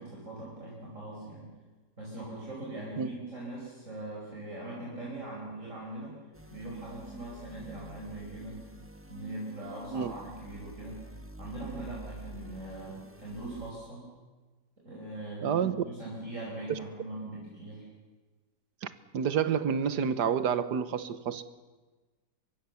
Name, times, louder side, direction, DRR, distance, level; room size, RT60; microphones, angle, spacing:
voice 1, 0.0-1.5 2.0-6.2 6.5-8.6 9.1-11.0 11.4-14.0 14.8-17.8, right 2 dB, 45° right, 5.5 m, -41 dB
sound 1, 6.3-13.7, right 1 dB, 10° right, 1.3 m, -48 dB
voice 2, 15.4-15.8 16.7-16.8 18.8-21.4, right 7 dB, 75° right, 1.7 m, -29 dB
24.0 x 23.5 x 7.1 m
omnidirectional pair, 1.8 m